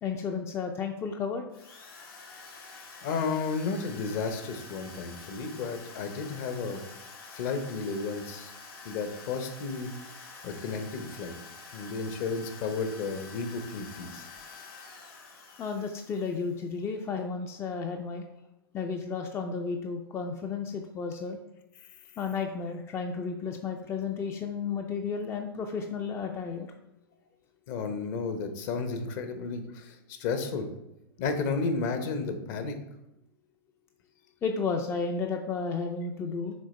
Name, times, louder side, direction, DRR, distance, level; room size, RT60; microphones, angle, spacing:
voice 1, 0.0-1.5 15.6-18.2 18.7-21.4 22.2-26.7 34.4-36.5, left 5 dB, 20° left, 4 dB, 0.4 m, -33 dB
Drill, 1.5-16.7, left 4 dB, 75° left, 2.2 m, -47 dB
voice 2, 2.4-6.8 7.3-8.5 8.8-9.9 10.4-11.3 11.7-14.3 27.7-30.7 31.2-32.8, left 4 dB, 50° left, 7 dB, 0.9 m, -33 dB
6.4 x 3.5 x 4.2 m, 0.88 s
hypercardioid pair, 120°, 13 cm